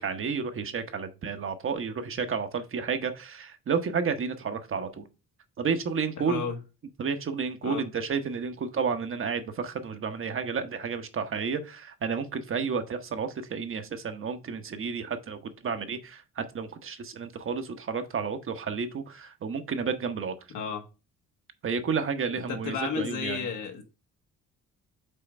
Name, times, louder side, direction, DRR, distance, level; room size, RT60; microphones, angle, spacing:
voice 1, 0.0-5.1 5.6-6.4 7.0-20.3 21.6-23.5, right 5 dB, 45° right, 1.0 m, -31 dB
voice 2, 6.2-6.6 7.6-7.8 20.5-20.8 22.5-23.8, left 6 dB, 80° left, 1.5 m, -32 dB
5.6 x 3.8 x 5.1 m
cardioid pair, 90°, 30 cm